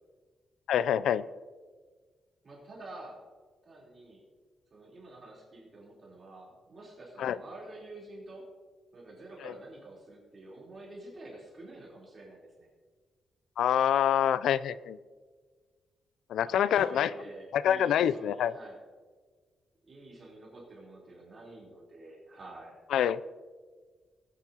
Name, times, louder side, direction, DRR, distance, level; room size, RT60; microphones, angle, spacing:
voice 1, 0.7-1.2 7.2-7.4 13.6-15.0 16.3-17.1 17.5-18.5 22.9-23.2, left 9 dB, 90° left, 17 dB, 0.3 m, -26 dB
voice 2, 2.4-3.2 3.6-4.2 4.7-8.5 8.9-12.7 16.4-18.8 19.8-22.8, right 2 dB, 35° right, -4 dB, 3.6 m, -48 dB
18.5 x 9.9 x 2.9 m, 1.5 s
cardioid pair, 125°, 0 cm